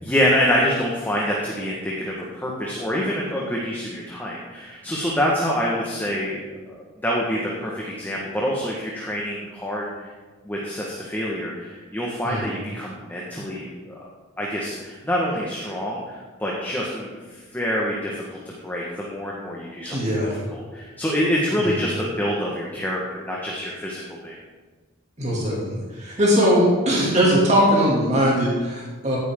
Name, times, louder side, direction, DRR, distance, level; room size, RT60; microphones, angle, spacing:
voice 1, 0.0-9.9 10.4-14.0 14.4-16.1 16.4-20.0 20.5-24.4, equal, 10° left, -4 dB, 1.6 m, -26 dB
voice 2, 19.9-20.3 21.6-21.7 25.2-29.2, equal, 35° right, -5 dB, 2.8 m, -20 dB
15.5 x 9.4 x 3.9 m, 1.3 s
head